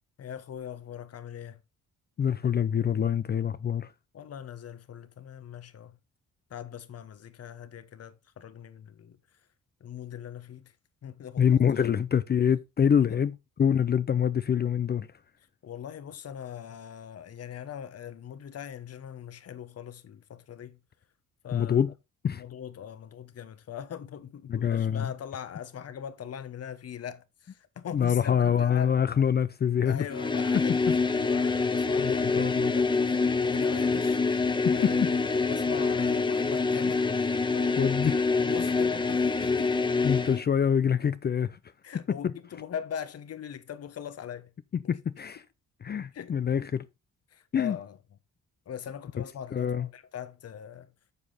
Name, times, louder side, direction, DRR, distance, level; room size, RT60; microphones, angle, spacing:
voice 1, 0.2-1.6 4.1-6.0 6.5-9.2 9.8-10.7 11.0-11.6 13.1-13.2 15.6-20.8 21.4-21.8 22.3-29.0 29.8-32.3 32.7-37.9 38.3-39.9 41.8-44.5 46.1-46.6 47.3-48.0 48.7-50.9, left 8 dB, 55° left, 1.1 m, -41 dB
voice 2, 2.2-3.9 11.4-15.1 21.5-21.9 22.2-22.4 24.5-25.1 27.9-30.1 30.5-31.0 32.0-32.7 34.6-35.1 37.8-38.2 40.0-41.6 41.9-42.3 44.9-45.4 45.8-46.8 47.5-47.8 49.5-49.9, left 8 dB, 35° left, 0.5 m, -25 dB
sound 1, 30.1-40.4, left 4 dB, 15° left, 0.9 m, -26 dB
7.3 x 6.8 x 4.1 m
cardioid pair, 90°, 30 cm